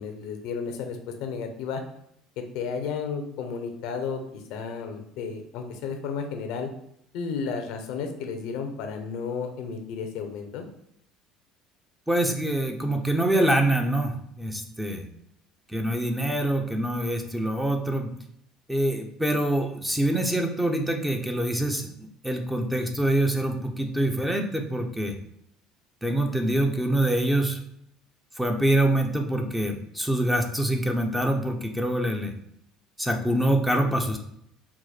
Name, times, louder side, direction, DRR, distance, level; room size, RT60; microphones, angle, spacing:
voice 1, 0.0-1.8 2.5-6.7 7.1-10.6, left 5 dB, 70° left, 5 dB, 0.7 m, -33 dB
voice 2, 12.1-15.0 15.7-18.1 18.7-21.9 22.2-25.2 26.0-27.6 28.4-32.3 33.0-34.2, right 1 dB, 5° right, 3 dB, 0.8 m, -25 dB
4.7 x 2.1 x 4.1 m, 0.74 s
hypercardioid pair, 75°, 0 cm